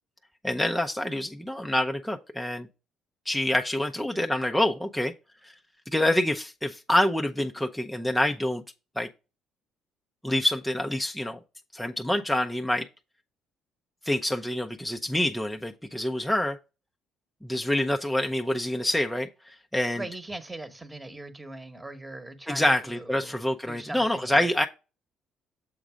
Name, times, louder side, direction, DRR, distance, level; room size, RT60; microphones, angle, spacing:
voice 1, 0.4-2.7 3.3-5.1 5.4-5.5 5.9-8.6 9.0-9.1 10.2-11.4 11.7-12.9 14.0-16.6 17.4-20.0 22.5-24.7, left 1 dB, ahead, 0.6 m, -26 dB
voice 2, 19.9-24.5, right 2 dB, 15° right, 1.2 m, -41 dB
7.3 x 3.8 x 5.0 m
supercardioid pair, 80°, 0 cm